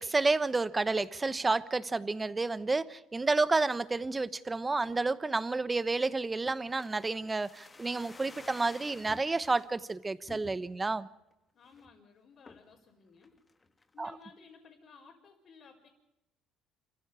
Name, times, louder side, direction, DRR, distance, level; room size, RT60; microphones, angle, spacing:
voice 1, 0.0-11.1 14.0-14.1, right 3 dB, 20° right, 1.0 m, -30 dB
sound 1, 6.5-9.7 10.3-10.9 11.3-11.4 11.6-12.0 12.5-12.8 13.2-13.9 14.2-14.3, left 3 dB, 20° left, 1.4 m, -52 dB
voice 2, 11.5-13.3 13.9-15.9, left 5 dB, 50° left, 4.6 m, -56 dB
27.5 x 15.0 x 7.0 m
cardioid pair, 110°, 0 cm